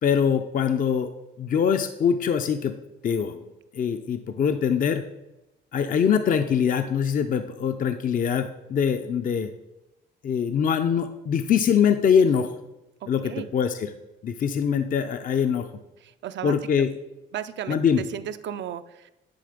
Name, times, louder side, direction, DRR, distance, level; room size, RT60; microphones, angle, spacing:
voice 1, 0.0-1.1 1.4-2.7 3.0-3.5 3.7-5.1 5.7-9.5 10.2-12.6 13.1-13.9 14.2-15.7 16.4-16.9 17.7-18.0, left 7 dB, 45° left, 8 dB, 0.5 m, -23 dB
voice 2, 13.0-13.5 16.0-16.5 17.3-17.8 18.1-19.1, right 10 dB, 65° right, 11 dB, 0.5 m, -34 dB
9.8 x 3.8 x 5.1 m, 0.98 s
cardioid pair, 90°, 20 cm